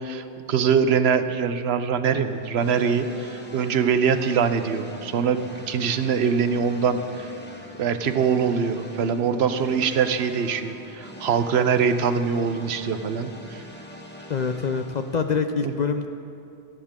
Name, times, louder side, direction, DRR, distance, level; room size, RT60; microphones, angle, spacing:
voice 1, 0.0-5.4 5.7-7.3 7.8-13.6 15.6-15.7, right 6 dB, 75° right, 10 dB, 0.9 m, -23 dB
sound 1, 2.2-15.4, left 1 dB, 10° left, 1.1 m, -43 dB
voice 2, 14.3-16.1, left 5 dB, 50° left, 7 dB, 0.5 m, -25 dB
17.5 x 13.0 x 3.6 m, 2.6 s
omnidirectional pair, 1.1 m